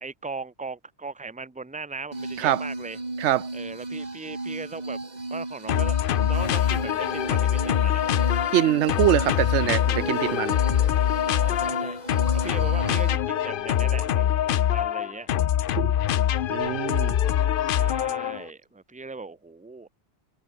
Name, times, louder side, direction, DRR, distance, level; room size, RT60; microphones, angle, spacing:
voice 1, 0.0-3.0 3.5-5.0 5.3-6.0 6.2-8.1 11.3-12.0 12.4-15.3 17.6-19.9, right 3 dB, 5° right, 0.9 m, -38 dB
sound 1, 2.1-13.2, right 2 dB, 40° right, 2.7 m, -35 dB
voice 2, 3.2-3.5 8.5-10.6 15.8-15.9 16.5-17.2, right 13 dB, 85° right, 0.9 m, -24 dB
sound 2, 5.7-18.4, left 11 dB, 60° left, 0.7 m, -24 dB
sound 3, 6.3-14.7, left 3 dB, 35° left, 1.5 m, -44 dB
omnidirectional pair, 1.1 m